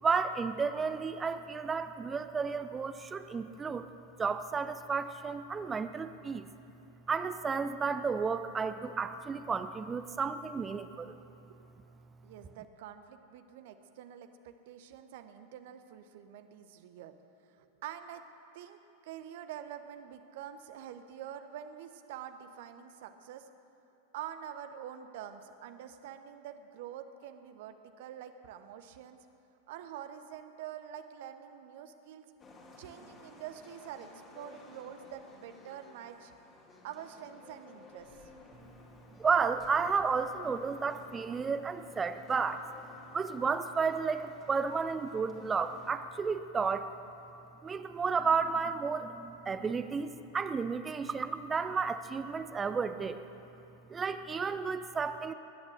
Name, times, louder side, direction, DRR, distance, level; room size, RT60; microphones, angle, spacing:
voice 1, 0.0-3.9 4.2-6.5 7.1-11.1 39.2-42.6 43.1-46.9 47.6-53.2 53.9-55.3, right 5 dB, 15° right, 11 dB, 0.6 m, -32 dB
voice 2, 12.2-17.1 17.5-18.2 18.5-23.5 24.1-29.2 29.7-32.3 32.8-36.3 36.8-38.1, right 10 dB, 50° right, 9 dB, 1.0 m, -46 dB
sound 1, 32.4-45.9, left 3 dB, 25° left, 2.5 m, -55 dB
20.5 x 10.5 x 6.6 m, 2.8 s
figure-of-eight pair, 90°, 0 cm